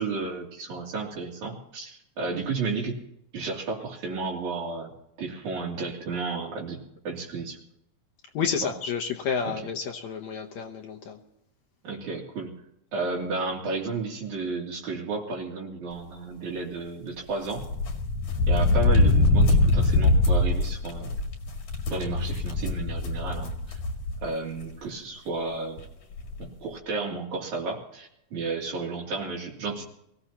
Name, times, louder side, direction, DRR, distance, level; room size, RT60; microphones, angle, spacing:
voice 1, 0.0-3.0 3.3-4.9 5.2-7.6 8.6-8.7 9.4-9.5 11.8-12.5 12.9-17.7 18.5-21.2 21.9-23.8 24.2-25.8 26.4-29.8, right 4 dB, 75° right, -1 dB, 4.2 m, -32 dB
voice 2, 8.3-11.2, left 6 dB, 70° left, 2 dB, 2.2 m, -30 dB
sound 1, 17.5-24.2 24.6-24.7 25.8-25.9 26.1-26.4, left 2 dB, 90° left, 3.7 m, -23 dB
23.5 x 16.0 x 2.9 m, 0.80 s
omnidirectional pair, 3.4 m